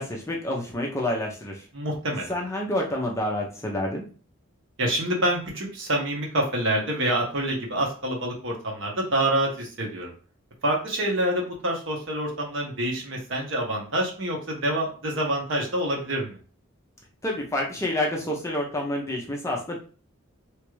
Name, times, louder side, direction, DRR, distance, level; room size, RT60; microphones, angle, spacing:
voice 1, 0.0-1.6 2.3-4.1 17.2-19.8, left 1 dB, 15° left, -1 dB, 0.5 m, -28 dB
voice 2, 1.7-2.3 4.8-10.1 10.6-16.4, right 1 dB, 65° right, 0 dB, 0.9 m, -27 dB
3.0 x 2.4 x 3.1 m, 0.39 s
head